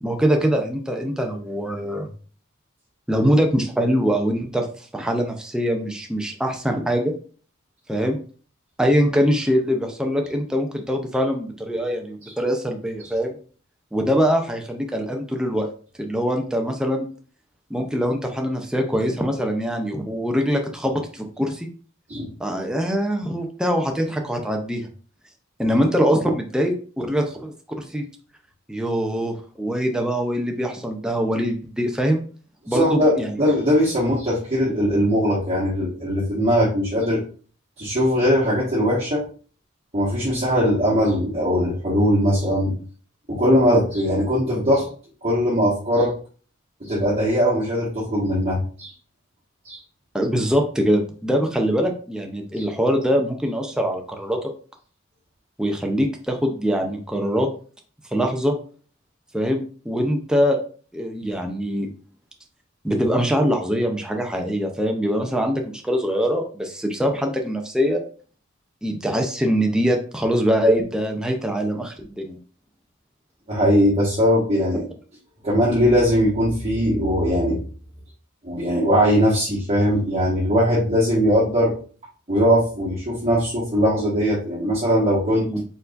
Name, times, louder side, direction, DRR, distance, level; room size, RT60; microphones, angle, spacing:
voice 1, 0.0-2.1 3.1-4.7 4.9-7.1 7.9-8.2 8.8-13.4 13.9-15.7 16.0-17.1 17.7-21.7 22.4-24.9 25.6-28.0 28.7-32.2 32.7-33.4 50.1-54.4 55.6-57.5 58.1-58.5 59.3-60.6 60.9-61.9 62.8-68.0 68.8-72.4 85.5-85.6, equal, 5° right, 3 dB, 0.5 m, -23 dB
voice 2, 32.7-37.2 37.8-39.2 39.9-42.7 43.3-44.9 45.2-46.1 46.8-48.9 49.6-49.8 52.6-52.7 73.5-74.9 75.4-77.6 78.4-81.7 82.3-85.5, equal, 30° right, -9 dB, 1.4 m, -20 dB
4.5 x 3.9 x 2.5 m, 0.41 s
head